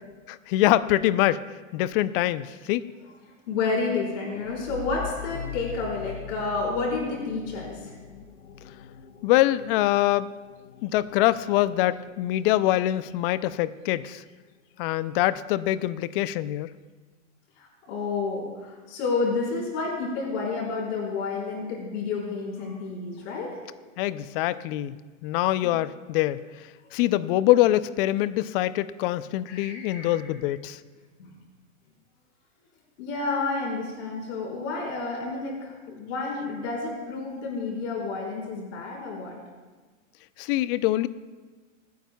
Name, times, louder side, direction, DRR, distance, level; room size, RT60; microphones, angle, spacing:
voice 1, 0.3-1.4 1.7-2.9 9.2-10.3 10.8-14.2 14.8-16.7 24.0-25.0 25.2-30.8 40.4-41.1, left 15 dB, 45° left, 16 dB, 0.5 m, -24 dB
voice 2, 3.5-7.9 17.6-23.6 25.6-25.7 29.5-30.2 31.2-31.3 33.0-39.4, left 4 dB, 65° left, -4 dB, 4.5 m, -30 dB
sound 1, 4.4-13.8, left 8 dB, 85° left, 0.9 m, -42 dB
25.5 x 9.4 x 2.3 m, 1.3 s
hypercardioid pair, 115°, 39 cm